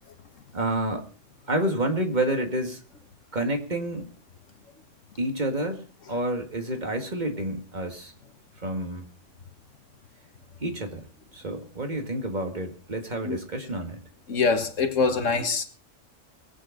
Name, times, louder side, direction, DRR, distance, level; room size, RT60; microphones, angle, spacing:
voice 1, 0.5-1.0 1.5-2.8 3.3-4.1 5.2-5.8 6.1-8.1 8.6-9.0 10.6-11.1 11.3-14.0, right 1 dB, 35° right, 2.2 m, -29 dB
voice 2, 14.3-15.6, left 4 dB, 80° left, 1.9 m, -24 dB
20.5 x 8.8 x 5.1 m
omnidirectional pair, 1.3 m